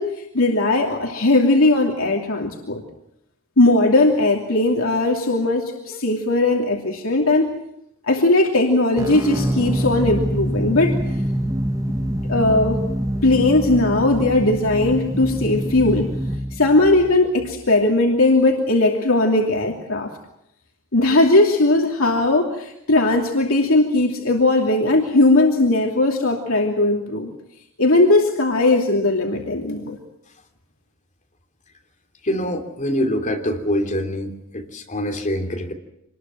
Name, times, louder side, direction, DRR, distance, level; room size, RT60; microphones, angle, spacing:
voice 1, 0.0-2.8 3.6-7.5 8.1-11.0 12.3-12.9 13.2-16.1 16.5-20.1 20.9-27.3 27.8-30.0, left 2 dB, 80° left, 0 dB, 2.8 m, -18 dB
sound 1, 9.0-17.7, equal, 15° right, 1.2 m, -25 dB
voice 2, 32.2-35.7, equal, 35° left, 3 dB, 3.2 m, -24 dB
26.5 x 21.0 x 7.5 m, 0.80 s
head